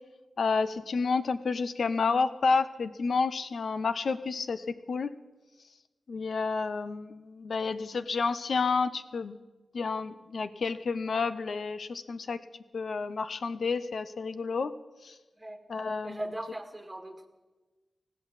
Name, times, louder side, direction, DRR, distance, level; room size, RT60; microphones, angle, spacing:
voice 1, 0.4-5.1 6.1-9.4 9.7-12.4 12.7-14.7 15.0-15.2 15.7-16.2, left 4 dB, 65° left, 13 dB, 0.7 m, -30 dB
voice 2, 16.0-17.3, right 1 dB, 15° right, 4 dB, 2.0 m, -39 dB
19.5 x 16.0 x 4.1 m, 1.2 s
wide cardioid pair, 95°, 0 cm